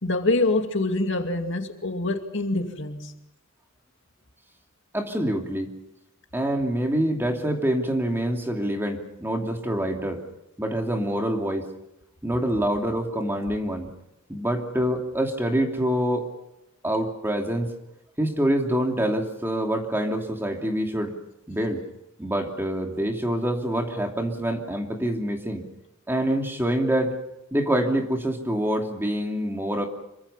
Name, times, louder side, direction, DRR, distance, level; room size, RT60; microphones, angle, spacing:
voice 1, 0.0-3.1, left 2 dB, 60° left, 5 dB, 2.3 m, -25 dB
voice 2, 4.9-5.7 6.3-10.2 10.6-11.7 12.2-13.9 14.3-16.2 16.8-17.7 18.2-21.1 21.5-21.8 22.2-25.7 26.1-27.1 27.5-29.9, right 1 dB, 10° right, 2 dB, 2.8 m, -26 dB
27.0 x 23.5 x 5.7 m, 0.88 s
head